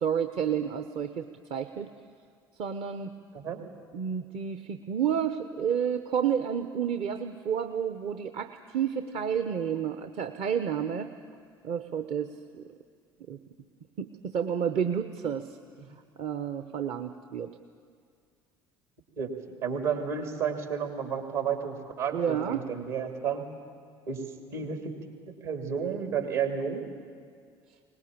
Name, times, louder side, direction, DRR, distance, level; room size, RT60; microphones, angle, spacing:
voice 1, 0.0-1.9 2.6-3.1 3.9-11.1 11.6-12.3 13.3-13.4 14.0-15.6 16.2-17.5 22.1-22.6, right 8 dB, 45° right, 9 dB, 0.9 m, -30 dB
voice 2, 19.2-23.4 24.1-24.2 24.5-24.9 25.4-26.8, right 7 dB, 65° right, 5 dB, 2.9 m, -31 dB
22.5 x 19.5 x 8.7 m, 2.1 s
figure-of-eight pair, 60°, 13 cm